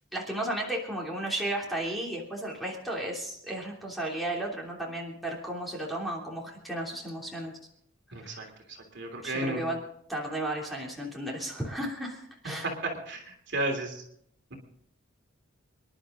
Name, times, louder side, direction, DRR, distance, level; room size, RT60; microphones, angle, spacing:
voice 1, 0.1-7.5 8.1-8.5 9.2-9.8 10.1-12.7, right 1 dB, ahead, -4 dB, 3.1 m, -34 dB
voice 2, 8.1-9.6 12.6-14.0 14.5-14.6, right 2 dB, 55° right, 2 dB, 3.2 m, -33 dB
25.5 x 11.0 x 3.9 m, 0.69 s
head